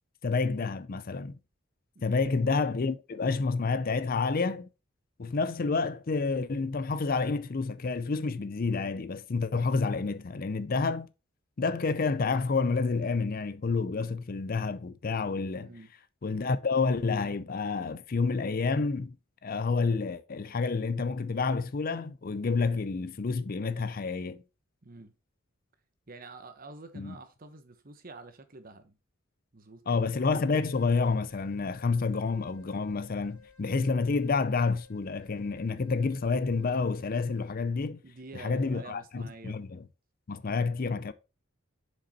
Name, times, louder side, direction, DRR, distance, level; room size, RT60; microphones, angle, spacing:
voice 1, 0.2-1.4 2.0-4.7 5.2-11.1 11.6-15.7 16.2-19.2 19.4-24.4 27.0-27.1 29.9-38.0 38.3-39.8 40.3-41.1, left 4 dB, 45° left, 0.5 m, -29 dB
voice 2, 15.6-15.9 24.8-25.1 26.1-29.0 29.5-30.1 38.0-39.6, right 2 dB, 40° right, 1.0 m, -47 dB
sound 1, 30.6-37.5, left 5 dB, 70° left, 1.9 m, -57 dB
7.3 x 5.2 x 4.1 m
head